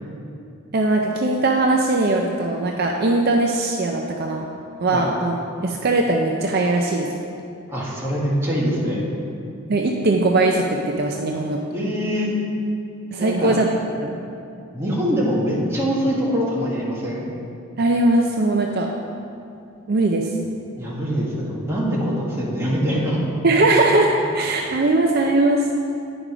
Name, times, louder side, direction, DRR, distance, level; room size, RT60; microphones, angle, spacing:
voice 1, 0.7-4.4 4.8-5.4 5.6-7.2 9.7-11.6 13.1-13.7 14.0-14.1 17.8-18.9 19.9-20.3 23.4-25.7, right 2 dB, 50° right, 1 dB, 0.5 m, -20 dB
voice 2, 7.7-9.0 11.7-12.3 13.2-13.6 14.7-17.3 20.8-23.2, equal, 10° right, -6 dB, 1.5 m, -23 dB
9.8 x 5.2 x 5.0 m, 2.6 s
head